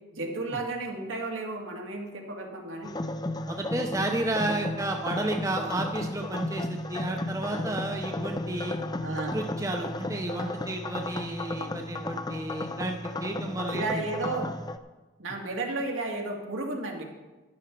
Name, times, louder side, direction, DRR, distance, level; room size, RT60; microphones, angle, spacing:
voice 1, 0.1-2.9 9.0-9.4 13.7-14.5 15.2-17.0, right 2 dB, 85° right, 0 dB, 2.3 m, -33 dB
sound 1, 2.8-14.8, left 2 dB, 20° left, 0.4 m, -34 dB
voice 2, 3.5-8.8 9.3-14.0, right 2 dB, 15° right, 3 dB, 0.7 m, -32 dB
11.5 x 11.0 x 4.7 m, 1.2 s
head